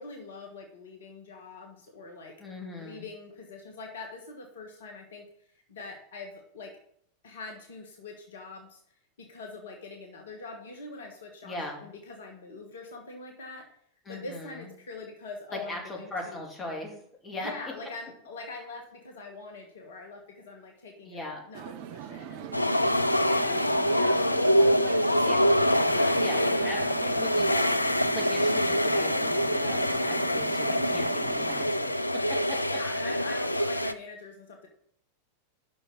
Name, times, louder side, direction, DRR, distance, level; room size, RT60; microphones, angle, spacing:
voice 1, 0.0-2.4 2.8-6.7 7.2-8.8 9.2-13.7 14.1-16.4 17.4-27.2 32.6-34.7, left 3 dB, 60° left, 2 dB, 1.5 m, -43 dB
voice 2, 2.4-3.1 11.4-11.9 14.1-14.7 15.5-17.5 21.1-21.4 25.2-25.4 25.8-26.8 27.2-27.6 28.1-32.0 32.3-32.6, left 1 dB, 20° left, 0 dB, 2.2 m, -39 dB
sound 1, 21.5-31.7, right 10 dB, 45° right, 0.6 m, -41 dB
sound 2, 22.5-33.9, equal, 85° left, 0.3 m, -25 dB
6.1 x 6.1 x 6.1 m, 0.65 s
figure-of-eight pair, 90°, 0 cm